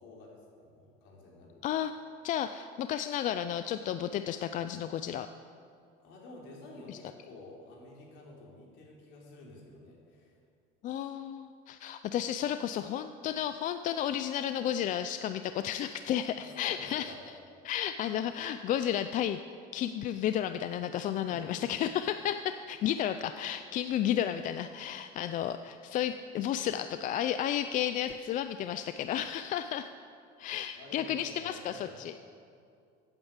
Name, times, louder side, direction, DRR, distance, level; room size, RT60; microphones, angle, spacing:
voice 1, 0.0-1.6 6.0-10.4 16.4-17.3 21.2-21.7 30.7-32.0, left 2 dB, 65° left, -2 dB, 3.6 m, -50 dB
voice 2, 2.2-5.3 6.9-7.0 10.8-17.1 17.6-19.4 19.7-29.9 30.4-32.1, left 10 dB, 40° left, 10 dB, 0.4 m, -32 dB
15.0 x 8.9 x 7.3 m, 2.4 s
cardioid pair, 155°, 20 cm